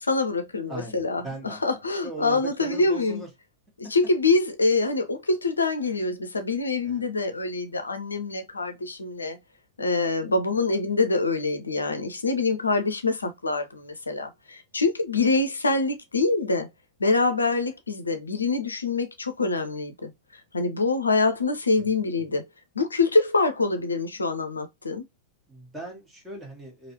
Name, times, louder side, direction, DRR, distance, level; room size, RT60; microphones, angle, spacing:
voice 1, 0.0-3.2 3.9-9.4 9.8-16.7 17.0-20.1 20.5-22.4 22.8-25.0, left 3 dB, 75° left, 0.5 m, -25 dB
voice 2, 0.7-1.6 2.0-3.3 6.8-7.1 10.2-10.3 15.1-15.4 21.7-22.0 25.5-26.9, right 1 dB, 10° right, 1.5 m, -39 dB
3.1 x 2.5 x 2.8 m
figure-of-eight pair, 90°, 0 cm